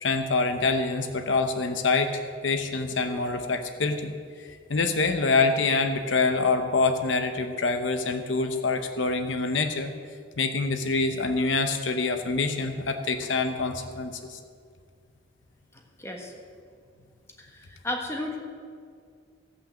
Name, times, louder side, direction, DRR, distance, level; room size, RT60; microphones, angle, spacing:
voice 1, 0.0-4.1 4.4-9.9 10.4-14.4, left 3 dB, 80° left, 7 dB, 0.8 m, -26 dB
voice 2, 16.0-16.3 17.4-18.4, left 1 dB, 15° left, 0 dB, 1.4 m, -33 dB
15.5 x 5.8 x 7.5 m, 2.2 s
head